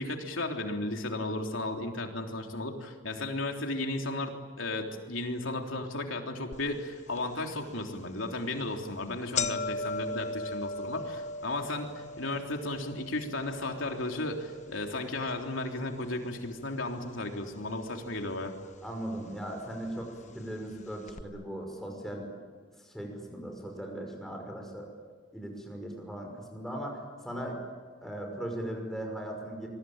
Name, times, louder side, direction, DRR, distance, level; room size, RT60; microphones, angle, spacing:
voice 1, 0.0-18.5, left 2 dB, 85° left, 3 dB, 3.5 m, -34 dB
sound 1, 6.5-6.6 7.2-7.3 8.1-8.3 8.6-8.7 9.0-17.2 17.5-18.2 19.0-19.1 20.0-20.1 20.4-20.5 21.1-21.2, left 3 dB, 35° left, 0.9 m, -38 dB
voice 2, 18.8-22.3 22.8-24.9 25.3-27.6 28.0-29.7, right 1 dB, ahead, 1 dB, 5.7 m, -38 dB
25.5 x 22.5 x 8.9 m, 1.5 s
head